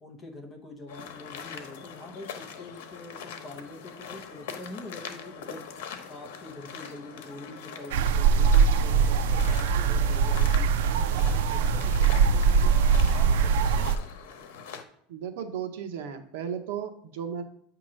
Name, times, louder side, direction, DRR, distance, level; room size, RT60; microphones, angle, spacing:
voice 1, 0.0-12.8 13.1-13.9, left 2 dB, 15° left, 1 dB, 0.9 m, -45 dB
sound 1, 0.9-14.8, left 7 dB, 85° left, 1.0 m, -42 dB
sound 2, 7.9-14.0, right 6 dB, 85° right, 0.3 m, -22 dB
voice 2, 15.1-17.4, right 8 dB, 70° right, 7 dB, 0.8 m, -35 dB
8.7 x 2.9 x 6.2 m, 0.65 s
supercardioid pair, 180°, 0 cm